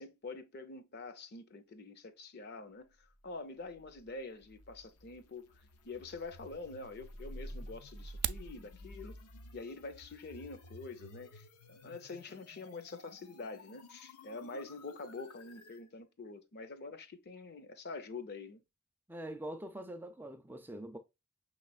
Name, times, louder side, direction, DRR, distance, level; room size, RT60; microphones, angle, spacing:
voice 1, 0.0-5.5 5.8-9.2 9.5-18.6, left 3 dB, 45° left, 0.6 m, -46 dB
sound 1, 3.7-15.8, equal, 85° left, 0.7 m, -52 dB
sound 2, 8.0-8.5, right 14 dB, 90° right, 0.3 m, -36 dB
voice 2, 19.1-21.0, right 1 dB, 10° right, 0.3 m, -44 dB
5.9 x 3.1 x 2.3 m
head